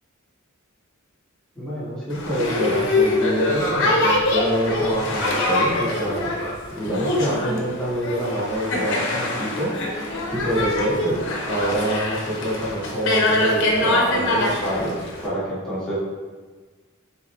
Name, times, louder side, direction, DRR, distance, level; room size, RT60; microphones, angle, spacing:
voice 1, 1.5-6.3 6.7-9.7 10.3-15.9, right 1 dB, 5° left, -11 dB, 1.1 m, -26 dB
Boat Water vehicle, 2.1-15.3, left 2 dB, 60° left, 0.8 m, -24 dB
4.0 x 3.5 x 3.3 m, 1.4 s
head